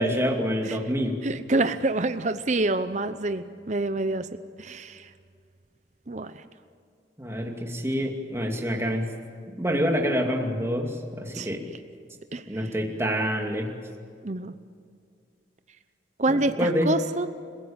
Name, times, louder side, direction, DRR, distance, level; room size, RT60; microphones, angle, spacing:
voice 1, 0.0-1.2 7.2-9.1 9.5-11.6 12.5-13.7 16.3-16.9, equal, 15° right, 2 dB, 2.6 m, -27 dB
voice 2, 1.2-4.3 4.6-5.1 6.1-6.4 11.3-11.5 12.3-12.4 14.2-14.5 16.2-17.3, right 2 dB, 40° right, 11 dB, 0.8 m, -27 dB
30.0 x 16.5 x 8.8 m, 2.3 s
head